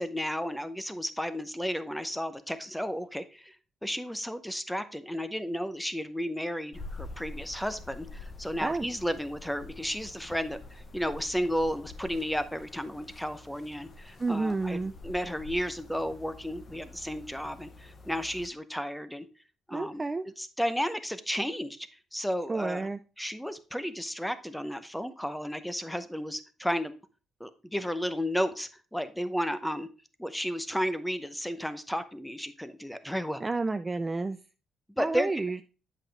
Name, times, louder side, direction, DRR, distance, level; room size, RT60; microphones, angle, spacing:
voice 1, 0.0-3.6 3.8-14.8 15.0-19.3 19.7-20.0 20.4-22.9 23.2-26.9 27.4-29.9 30.2-33.4 35.0-35.3, equal, 5° left, 12 dB, 0.7 m, -33 dB
sound 1, 6.7-18.5, left 2 dB, 45° left, 0.9 m, -47 dB
voice 2, 14.2-14.9 19.7-20.3 22.5-23.0 33.4-34.4 35.0-35.6, right 3 dB, 20° right, 10 dB, 0.4 m, -30 dB
8.2 x 5.8 x 3.3 m, 0.34 s
cardioid pair, 90°, 0 cm